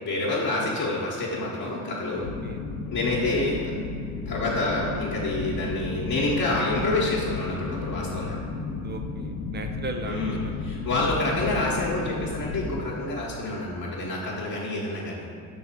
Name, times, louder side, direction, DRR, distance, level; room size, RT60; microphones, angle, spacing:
voice 1, 0.0-2.3 2.9-3.6 4.3-8.4 10.0-15.3, left 2 dB, 45° left, -7 dB, 1.2 m, -28 dB
sound 1, 2.2-12.8, left 3 dB, 80° left, 0.6 m, -33 dB
voice 2, 2.2-2.6 8.8-10.2 10.4-10.7, right 2 dB, 25° right, 5 dB, 0.4 m, -37 dB
6.7 x 3.2 x 4.4 m, 2.5 s
hypercardioid pair, 65°, 41 cm